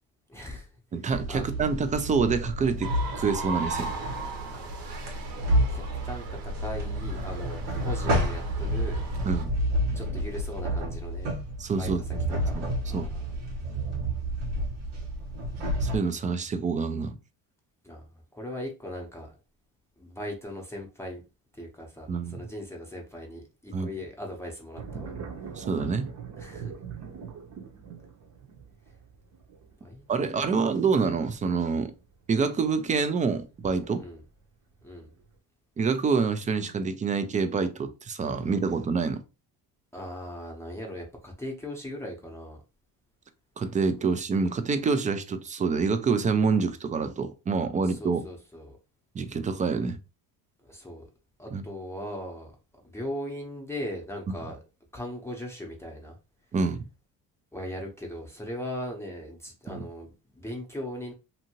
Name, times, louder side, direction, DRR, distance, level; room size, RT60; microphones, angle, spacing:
voice 1, 0.3-0.7 1.3-1.4 4.5-5.0 5.7-9.0 9.9-11.3 11.7-11.9 12.4-13.3 17.8-18.1 18.3-19.3 20.0-21.2 21.5-25.1 26.4-26.7 29.8-30.8 34.0-34.2 34.8-35.1 39.9-42.6 47.8-48.8 50.7-51.1 51.4-52.5 52.9-54.6 54.9-56.2 57.5-60.1 60.4-61.1, left 1 dB, 5° left, 0.7 m, -39 dB
voice 2, 0.9-3.9 9.2-9.5 11.6-12.0 12.3-12.7 12.9-13.1 15.8-17.1 22.1-22.4 23.7-23.9 25.6-26.1 30.1-31.9 32.3-34.0 35.8-39.2 43.6-48.2 49.1-50.0 51.5-51.6 56.5-56.9 59.7-59.8, right 5 dB, 20° right, 0.3 m, -27 dB
sound 1, 1.1-16.0, equal, 85° right, 1.2 m, -30 dB
sound 2, 2.8-9.4, right 4 dB, 60° right, 1.0 m, -38 dB
sound 3, 24.8-34.4 34.8-35.4, right 6 dB, 40° right, 0.8 m, -42 dB
2.7 x 2.6 x 2.8 m
supercardioid pair, 95°, 41 cm